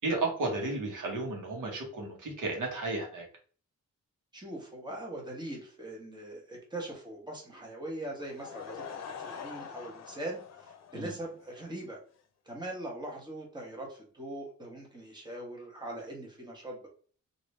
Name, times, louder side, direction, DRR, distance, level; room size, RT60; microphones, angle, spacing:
voice 1, 0.0-3.2 10.9-11.1, right 2 dB, 90° right, 0 dB, 1.2 m, -33 dB
voice 2, 4.3-8.8 9.1-12.0 12.5-16.9, right 1 dB, 15° right, -1 dB, 1.1 m, -41 dB
Laughter / Crowd, 8.2-11.7, left 7 dB, 60° left, 0.7 m, -44 dB
3.0 x 2.6 x 3.1 m, 0.43 s
wide cardioid pair, 115°, 30 cm